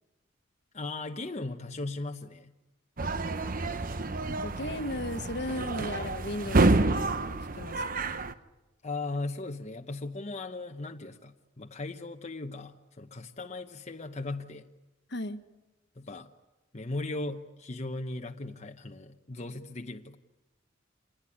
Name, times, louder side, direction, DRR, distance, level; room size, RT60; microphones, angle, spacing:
voice 1, 0.7-2.5 8.8-14.7 16.0-16.3 16.7-20.2, left 2 dB, 35° left, 4 dB, 1.0 m, -37 dB
sound 1, 3.0-8.3, right 2 dB, 45° right, 1.0 m, -28 dB
voice 2, 4.3-8.0 15.1-15.4, left 1 dB, 60° left, 9 dB, 1.5 m, -36 dB
27.5 x 20.0 x 9.9 m, 1.1 s
head